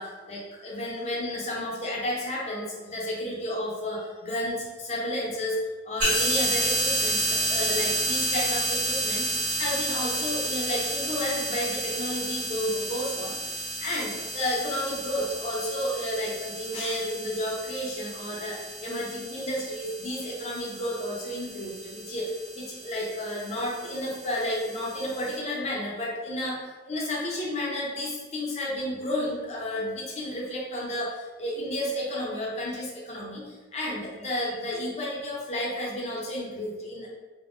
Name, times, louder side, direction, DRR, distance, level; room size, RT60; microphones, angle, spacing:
voice 1, 0.0-5.6 5.8-37.1, left 1 dB, 35° left, -3 dB, 0.6 m, -32 dB
sound 1, 6.0-25.3, right 1 dB, 50° right, 1.4 m, -31 dB
3.4 x 2.1 x 2.6 m, 1.2 s
head